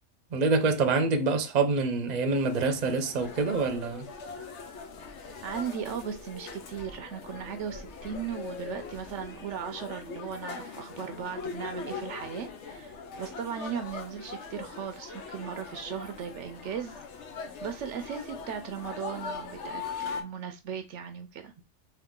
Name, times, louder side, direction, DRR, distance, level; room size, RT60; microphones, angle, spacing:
voice 1, 0.3-4.1, right 4 dB, 40° right, 0.7 m, -26 dB
sound 1, 2.3-20.2, left 5 dB, 70° left, 1.0 m, -41 dB
voice 2, 5.2-16.9 17.3-21.5, right 8 dB, 70° right, 0.9 m, -37 dB
3.8 x 2.6 x 3.6 m
omnidirectional pair, 1.3 m